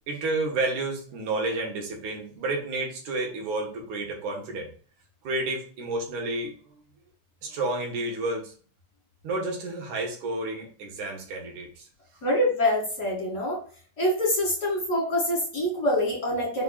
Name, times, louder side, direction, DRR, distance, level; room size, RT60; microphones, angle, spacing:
voice 1, 0.1-4.7 5.2-6.5 7.4-8.5 9.2-11.9, right 2 dB, 85° right, 0 dB, 3.0 m, -30 dB
voice 2, 12.2-13.6 14.0-16.6, left 1 dB, 35° left, -4 dB, 2.6 m, -25 dB
5.7 x 3.8 x 5.6 m, 0.42 s
omnidirectional pair, 3.3 m